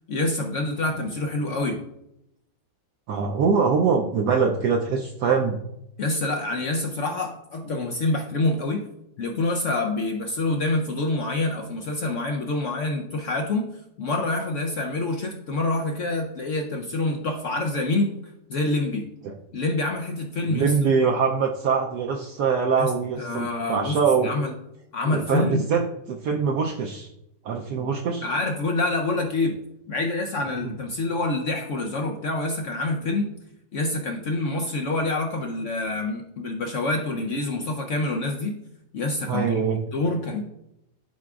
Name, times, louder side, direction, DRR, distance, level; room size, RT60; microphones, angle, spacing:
voice 1, 0.1-1.8 6.0-8.8 9.2-13.7 14.0-18.1 18.5-19.0 19.5-20.9 22.8-22.9 23.2-24.5 24.9-25.7 28.2-29.6 29.9-33.3 33.7-38.6 38.9-39.6 39.9-40.4, left 2 dB, 75° left, 2 dB, 0.7 m, -26 dB
voice 2, 3.1-5.6 19.2-19.3 20.4-24.3 25.0-27.1 27.4-28.3 30.6-30.8 39.3-39.8, right 5 dB, 70° right, 2 dB, 1.1 m, -23 dB
12.0 x 4.8 x 2.3 m, 0.83 s
omnidirectional pair, 2.1 m